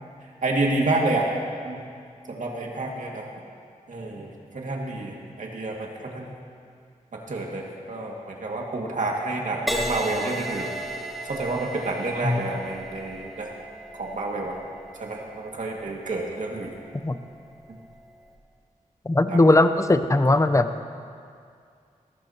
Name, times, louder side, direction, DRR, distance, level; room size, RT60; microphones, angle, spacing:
voice 1, 0.4-1.3 1.7-1.8 2.3-3.2 3.9-6.3 7.1-10.7 11.2-13.5 14.0-14.6 15.0-16.7 19.3-19.4, right 2 dB, 65° right, -1 dB, 2.1 m, -29 dB
Crash cymbal, 9.7-17.3 18.0-18.3, right 1 dB, ahead, 1.7 m, -35 dB
voice 2, 19.1-20.7, left 2 dB, 20° left, 10 dB, 0.8 m, -19 dB
18.0 x 14.0 x 3.0 m, 2.3 s
cardioid pair, 45°, 14 cm